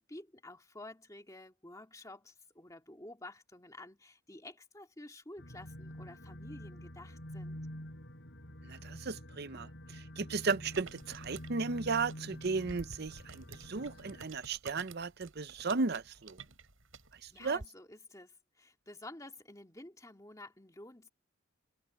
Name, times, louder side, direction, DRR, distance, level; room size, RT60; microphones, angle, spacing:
voice 1, 0.0-7.6 17.3-21.1, left 2 dB, 15° left, 2.4 m, -51 dB
sound 1, 5.4-14.3, equal, 55° left, 5.5 m, -47 dB
voice 2, 8.6-16.4 17.2-17.6, right 4 dB, 50° right, 0.7 m, -35 dB
sound 2, 10.5-17.6, right 4 dB, 70° right, 6.3 m, -53 dB
head